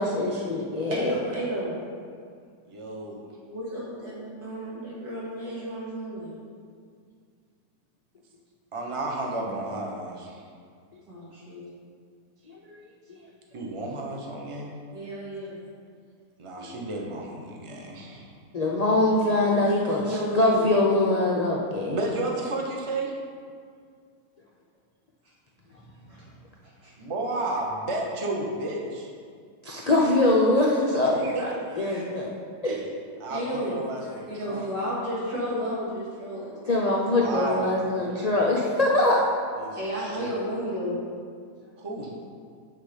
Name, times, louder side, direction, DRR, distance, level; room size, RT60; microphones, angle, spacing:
voice 1, 0.0-1.1 12.7-12.8 16.6-16.7 18.5-22.0 29.6-32.3 32.6-32.7 36.6-39.2, left 2 dB, 50° left, -3 dB, 0.4 m, -23 dB
voice 2, 0.9-1.7 3.5-6.3 11.1-11.6 14.9-15.5 19.4-20.6 26.1-26.2 26.8-26.9 31.8-32.0 33.3-33.8 34.3-36.7 39.8-41.0, equal, 90° right, -8 dB, 3.1 m, -32 dB
voice 3, 2.7-3.2 8.7-10.4 13.5-14.8 16.4-18.3 21.8-23.1 27.0-29.1 31.2-31.8 32.6-32.8 33.2-34.7 36.9-38.1 39.6-40.4 41.8-42.1, right 2 dB, 25° right, -1 dB, 0.9 m, -32 dB
7.4 x 6.4 x 5.1 m, 2.1 s
omnidirectional pair, 1.8 m